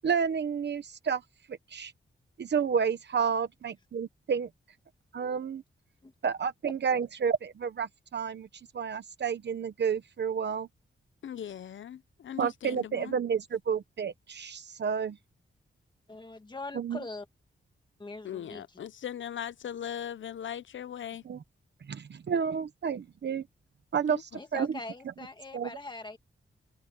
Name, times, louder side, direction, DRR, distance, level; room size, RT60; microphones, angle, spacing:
voice 1, 0.0-1.2 1.7-1.9 2.4-4.5 5.1-5.6 6.2-8.5 8.7-10.7 12.4-15.2 16.7-17.0 21.3-21.4 21.9-23.4 23.9-24.8 25.5-25.7, right 6 dB, 60° right, 1.0 m, -30 dB
voice 2, 11.2-13.1 18.2-21.2 24.1-24.2, left 9 dB, 75° left, 0.7 m, -39 dB
voice 3, 16.1-17.3 18.0-18.6 24.4-26.2, left 3 dB, 25° left, 1.9 m, -42 dB
wide cardioid pair, 170°, 20 cm